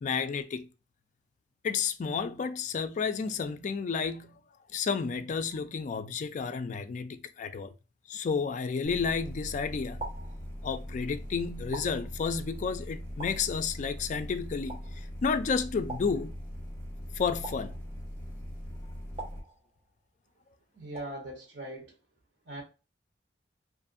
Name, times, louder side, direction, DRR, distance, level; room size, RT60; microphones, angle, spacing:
voice 1, 0.0-0.7 1.6-4.4 4.7-7.7 8.1-10.0 10.6-14.8 15.2-16.3 17.1-17.8, left 5 dB, 45° left, 0.3 m, -31 dB
sound 1, 8.8-19.4, equal, 15° left, 1.3 m, -41 dB
sound 2, 8.9-9.3 10.0-11.0 11.7-12.6 13.2-14.0 14.7-15.3 15.9-16.8 17.4-18.3 19.2-20.1 20.9-21.5, right 3 dB, 35° right, 0.9 m, -46 dB
voice 2, 20.7-21.9 22.5-22.6, right 1 dB, 80° right, 0.9 m, -40 dB
2.5 x 2.5 x 2.5 m
head